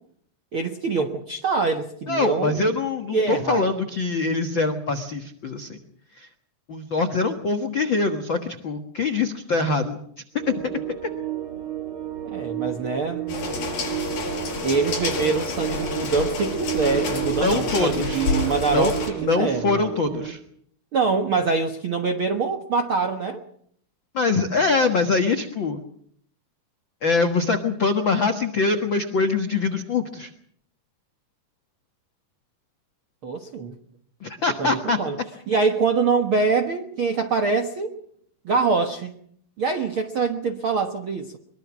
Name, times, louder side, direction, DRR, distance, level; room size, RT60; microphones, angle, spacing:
voice 1, 0.5-2.6 3.1-3.7 12.2-13.7 14.6-19.8 20.9-23.4 33.2-33.7 34.6-35.2 35.5-38.0 38.4-39.1 39.6-41.4, right 4 dB, 65° right, 5 dB, 1.3 m, -24 dB
voice 2, 2.1-5.8 6.2-6.3 6.7-10.0 10.4-10.7 17.4-18.3 18.7-18.9 19.2-20.4 24.1-25.8 27.0-30.3 34.2-35.0, left 3 dB, 85° left, 6 dB, 1.0 m, -23 dB
sound 1, 10.4-20.3, right 13 dB, 45° right, 1.8 m, -32 dB
sound 2, 13.3-19.1, left 4 dB, 60° left, 6.1 m, -29 dB
23.5 x 23.0 x 6.2 m, 0.64 s
omnidirectional pair, 4.7 m